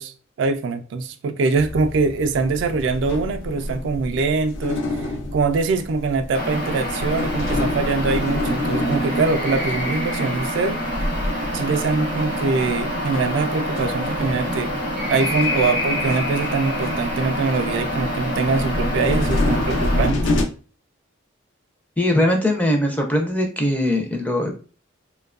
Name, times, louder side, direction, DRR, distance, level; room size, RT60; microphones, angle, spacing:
voice 1, 0.0-10.8 11.5-14.7 15.1-20.3, right 4 dB, 70° right, 0.3 m, -23 dB
sound 1, 1.6-20.4, left 1 dB, 75° left, 0.4 m, -29 dB
sound 2, 6.3-20.1, equal, 50° left, 0.8 m, -26 dB
voice 2, 22.0-24.5, left 1 dB, 10° left, 0.4 m, -20 dB
2.6 x 2.2 x 2.4 m
head